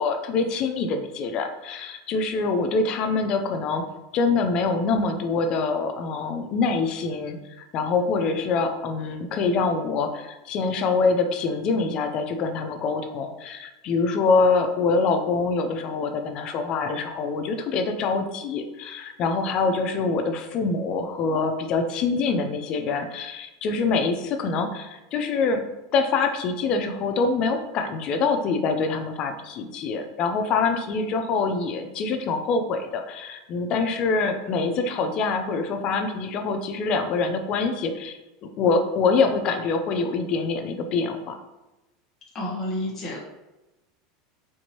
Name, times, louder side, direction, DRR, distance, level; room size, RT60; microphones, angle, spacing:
voice 1, 0.0-3.9 4.1-25.6 25.9-41.4, left 4 dB, 40° left, 6 dB, 0.5 m, -25 dB
voice 2, 42.3-43.2, left 1 dB, 20° left, -5 dB, 1.0 m, -30 dB
4.5 x 2.6 x 2.9 m, 1.0 s
supercardioid pair, 140°, 2 cm